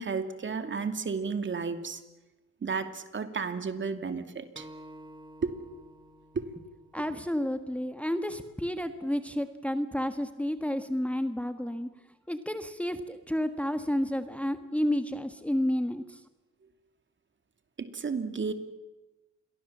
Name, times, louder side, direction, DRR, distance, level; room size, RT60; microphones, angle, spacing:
voice 1, 0.0-2.0 2.6-4.7 5.4-5.5 17.8-18.5, right 5 dB, 40° right, 8 dB, 2.7 m, -32 dB
Acoustic guitar, 4.6-7.8, right 1 dB, 15° right, 3.3 m, -51 dB
voice 2, 6.9-11.9 12.3-16.2, equal, 5° left, 9 dB, 1.6 m, -31 dB
28.5 x 23.0 x 7.4 m, 1.1 s
cardioid pair, 90°, 30 cm